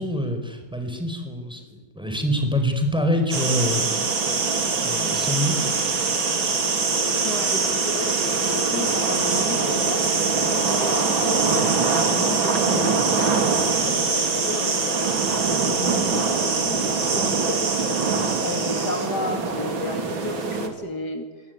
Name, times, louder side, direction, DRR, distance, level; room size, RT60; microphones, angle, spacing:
voice 1, 0.0-4.0 4.7-5.7, left 1 dB, ahead, 5 dB, 4.9 m, -26 dB
sound 1, 3.3-20.7, right 4 dB, 85° right, 3.5 m, -23 dB
voice 2, 7.2-15.2 15.6-18.0 18.4-21.5, left 3 dB, 55° left, 5 dB, 3.0 m, -33 dB
26.0 x 22.5 x 9.6 m, 1.2 s
omnidirectional pair, 2.1 m